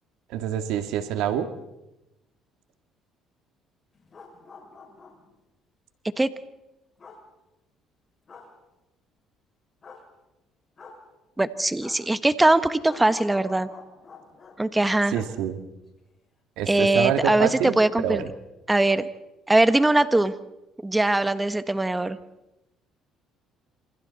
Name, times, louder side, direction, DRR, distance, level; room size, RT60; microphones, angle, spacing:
voice 1, 0.3-1.5 15.1-15.6 16.6-17.8 18.0-18.2, right 9 dB, 80° right, 8 dB, 1.9 m, -26 dB
sound 1, 3.9-5.3 7.0-7.2 8.3-8.5 9.8-10.0 10.8-11.0 11.8-12.0 12.8-14.5 15.1-15.3 15.6-15.7, left 4 dB, 40° left, 6.1 m, -46 dB
voice 2, 11.4-13.7 14.6-15.2 16.7-18.3 18.7-19.1 19.5-20.3 20.8-22.2, right 2 dB, 10° right, 12 dB, 1.3 m, -21 dB
28.0 x 26.5 x 4.2 m, 0.94 s
cardioid pair, 90°, 0 cm